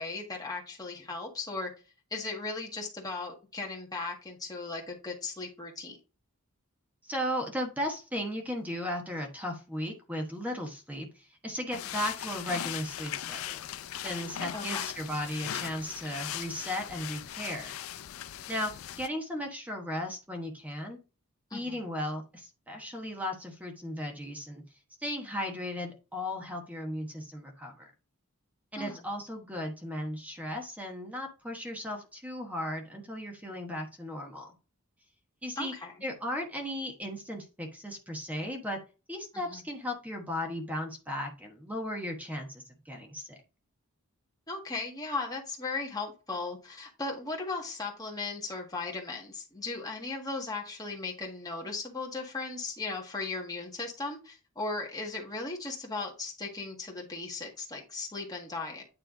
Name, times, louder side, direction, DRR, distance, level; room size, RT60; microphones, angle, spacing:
voice 1, 0.0-1.7 2.1-6.0 14.5-14.9 21.5-21.8 28.8-29.0 35.6-35.9 39.3-39.7 44.5-58.8, left 3 dB, 15° left, 0 dB, 1.6 m, -37 dB
voice 2, 7.0-13.7 13.9-17.8 18.5-18.7 19.0-21.0 21.5-24.6 25.0-27.9 28.7-34.5 35.4-35.7 36.0-38.8 39.1-43.4, left 1 dB, 5° right, 2 dB, 1.1 m, -36 dB
sound 1, 11.7-19.1, left 11 dB, 65° left, 0.4 m, -39 dB
9.4 x 3.3 x 3.8 m, 0.32 s
head